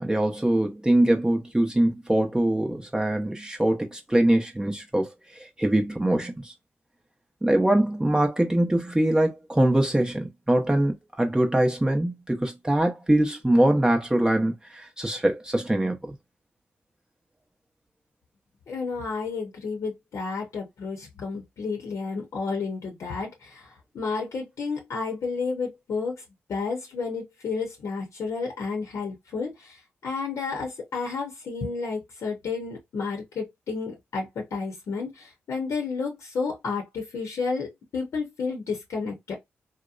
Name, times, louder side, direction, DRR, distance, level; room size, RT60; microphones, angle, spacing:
voice 1, 0.0-5.1 5.4-6.5 7.4-16.1, right 1 dB, 15° right, 0.7 m, -23 dB
voice 2, 18.7-26.2 26.5-39.3, left 4 dB, 70° left, 0.7 m, -31 dB
2.8 x 2.0 x 2.4 m
supercardioid pair, 45°, 5 cm